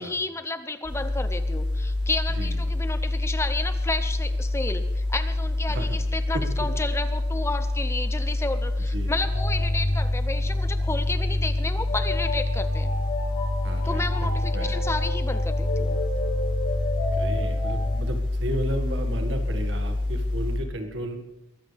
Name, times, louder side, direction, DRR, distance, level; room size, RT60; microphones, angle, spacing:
voice 1, 0.0-12.9 13.9-16.0, left 2 dB, 15° left, 10 dB, 0.7 m, -32 dB
sound 1, 0.8-20.6, left 2 dB, 5° right, 5.0 m, -27 dB
sound 2, 9.2-17.9, left 1 dB, 80° left, 4.3 m, -30 dB
voice 2, 13.6-14.0 14.5-14.8 16.9-21.2, right 1 dB, 65° right, 5 dB, 2.0 m, -33 dB
22.0 x 15.0 x 3.5 m, 0.90 s
head